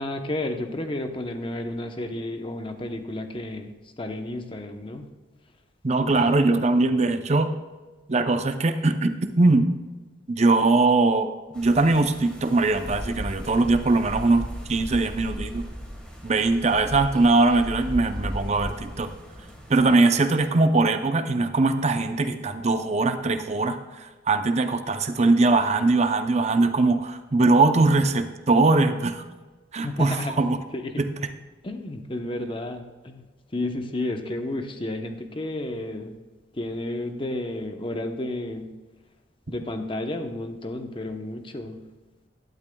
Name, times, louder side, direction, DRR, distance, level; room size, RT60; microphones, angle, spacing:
voice 1, 0.0-5.1 29.8-30.4 30.7-31.1 31.6-33.2 33.5-36.1 36.5-38.7 39.5-41.8, left 1 dB, 30° left, 6 dB, 0.9 m, -32 dB
voice 2, 5.8-7.5 8.1-9.7 10.3-15.6 16.2-19.1 19.7-29.2 29.7-30.6 31.0-31.1, right 3 dB, 35° right, 8 dB, 0.7 m, -21 dB
sound 1, 11.5-19.9, equal, 5° left, 1.6 m, -36 dB
12.0 x 12.0 x 2.3 m, 1.3 s
head